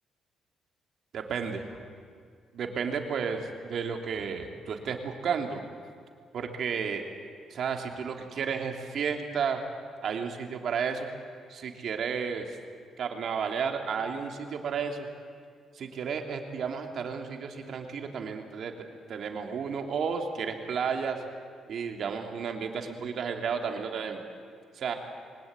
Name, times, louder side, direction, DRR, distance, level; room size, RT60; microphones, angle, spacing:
voice 1, 1.1-1.7 2.5-5.6 6.3-7.1 7.5-9.6 10.0-11.1 11.5-12.6 13.0-15.1 15.7-18.8 19.1-21.2 21.7-24.2 24.7-24.9, right 6 dB, 60° right, 4 dB, 2.9 m, -32 dB
23.0 x 19.5 x 8.8 m, 2.1 s
cardioid pair, 90°, 0 cm